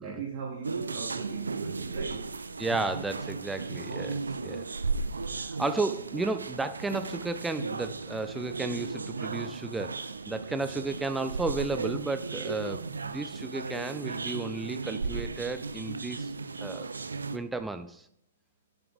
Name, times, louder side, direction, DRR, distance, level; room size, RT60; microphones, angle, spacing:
voice 1, 0.0-2.3, right 6 dB, 40° right, -2 dB, 1.2 m, -40 dB
sound 1, 0.6-17.4, right 4 dB, 80° right, 0.4 m, -35 dB
voice 2, 2.6-4.7 5.3-10.0 10.3-16.3 16.6-16.9 17.3-18.1, right 3 dB, 10° right, 9 dB, 0.3 m, -33 dB
6.9 x 5.9 x 3.5 m, 0.77 s
figure-of-eight pair, 115°, 0 cm